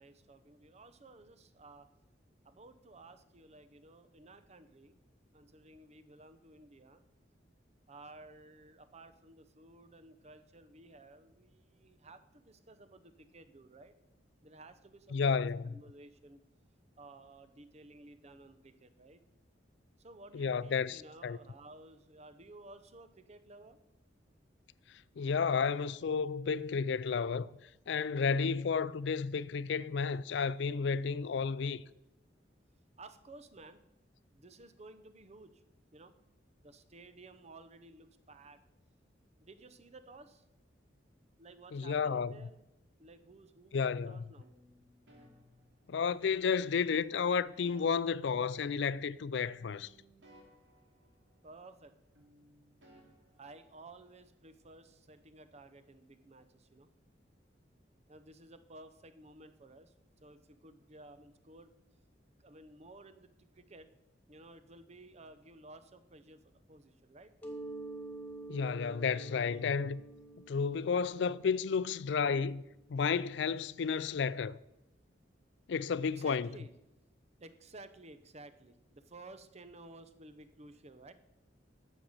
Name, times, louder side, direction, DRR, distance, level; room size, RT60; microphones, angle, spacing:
voice 1, 0.0-1.9 2.4-5.0 5.3-7.0 7.9-13.9 14.4-15.4 15.7-16.4 17.0-19.2 20.0-23.8 28.1-28.5 33.0-33.8 34.3-35.6 35.9-36.1 36.6-38.6 39.4-40.4 41.4-42.6 43.0-44.5 51.4-51.9 53.4-56.9 58.1-59.9 60.2-61.7 62.4-63.9 64.3-67.3 76.0-76.7 77.4-81.1, right 2 dB, 35° right, 0.8 m, -55 dB
voice 2, 15.1-15.7 20.3-21.4 25.2-27.5 27.9-31.8 41.7-42.3 43.7-44.2 45.9-49.9 68.5-70.0 70.5-72.6 72.9-74.6 75.7-76.5, left 5 dB, 70° left, 0.4 m, -32 dB
sound 1, 44.4-46.4 47.0-49.3 49.6-51.9 52.1-54.2, right 1 dB, 80° right, 2.6 m, -64 dB
Mallet percussion, 67.4-73.0, right 2 dB, 10° left, 1.9 m, -48 dB
10.0 x 7.3 x 6.6 m
head